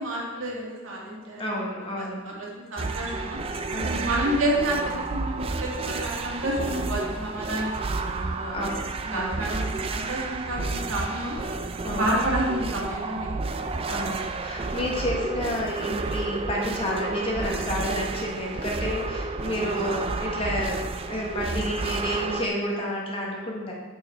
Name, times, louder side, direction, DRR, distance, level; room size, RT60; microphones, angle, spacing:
voice 1, 0.0-3.4 3.8-8.6 9.0-11.4 11.9-14.0 14.9-15.1, right 1 dB, 70° right, -4 dB, 2.0 m, -30 dB
voice 2, 1.4-2.2 3.7-4.1 8.5-8.7 9.1-9.3 11.8-12.1 13.9-23.7, equal, 25° left, -3 dB, 1.3 m, -30 dB
sound 1, 2.8-22.5, right 3 dB, 25° right, 0.3 m, -31 dB
8.2 x 4.9 x 4.5 m, 1.3 s
head